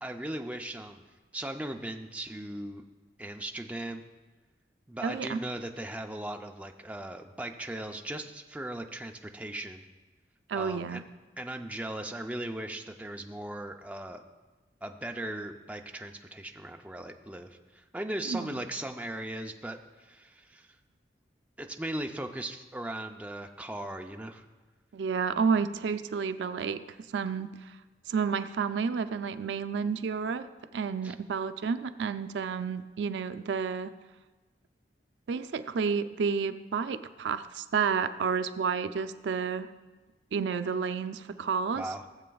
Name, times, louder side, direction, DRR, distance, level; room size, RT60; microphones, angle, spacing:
voice 1, 0.0-1.0 1.3-2.8 3.2-4.0 4.9-9.9 10.5-11.0 11.4-14.2 14.8-20.7 21.6-24.4 31.0-31.2 41.8-42.0, right 1 dB, 10° right, 4 dB, 0.4 m, -38 dB
voice 2, 5.0-5.4 10.5-11.0 18.3-18.5 24.9-26.8 27.1-27.7 28.1-30.5 30.7-33.9 35.3-39.7 40.3-41.9, right 5 dB, 80° right, 11 dB, 0.4 m, -30 dB
16.0 x 7.6 x 2.3 m, 1.2 s
head